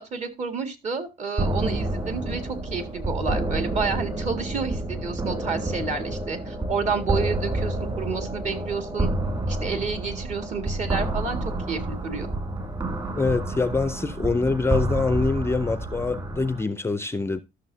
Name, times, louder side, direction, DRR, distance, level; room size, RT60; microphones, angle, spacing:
voice 1, 0.0-9.1 9.5-11.4 11.7-12.3, right 5 dB, 45° right, 2.0 m, -30 dB
sound 1, 1.4-16.6, right 2 dB, 25° right, 2.3 m, -29 dB
voice 2, 13.2-17.4, left 3 dB, 15° left, 0.5 m, -25 dB
13.5 x 6.4 x 2.7 m
cardioid pair, 110°, 17 cm